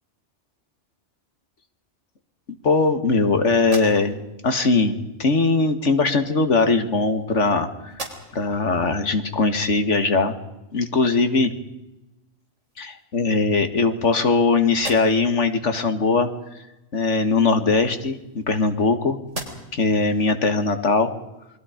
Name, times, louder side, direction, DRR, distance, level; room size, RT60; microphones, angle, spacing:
voice 1, 2.6-4.2 4.4-7.9 8.3-10.3 10.7-11.5 12.8-16.3 16.9-19.2 19.7-21.1, left 3 dB, 90° left, 8 dB, 2.3 m, -20 dB
sound 1, 3.6-4.4 5.5-5.7 6.6-7.5 7.9-8.6 9.1-9.2 11.8-12.0 12.4-13.1 13.7-14.4 14.7-15.4 17.4-18.9 19.2-19.9, right 1 dB, 80° right, 4.6 m, -39 dB
28.5 x 23.0 x 5.2 m, 0.96 s
omnidirectional pair, 1.2 m